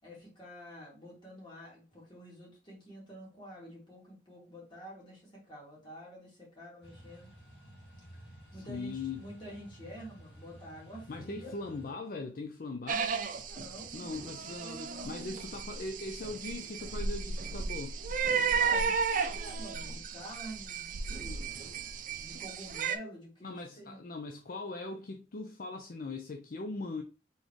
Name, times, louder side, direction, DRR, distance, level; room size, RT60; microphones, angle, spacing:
voice 1, 0.0-7.3 8.5-11.5 13.4-14.1 14.9-15.5 18.5-21.5 21.8-21.9 22.2-24.0, equal, 25° left, 2.4 m, -48 dB
sound 1, 6.8-11.9, right 1 dB, 70° left, 1.6 m, -53 dB
voice 2, 8.7-9.2 11.1-13.1 13.9-18.0 23.4-27.0, left 3 dB, 50° left, 0.5 m, -40 dB
sound 2, 12.9-23.0, right 5 dB, 50° right, 0.5 m, -34 dB
4.1 x 3.7 x 3.1 m
head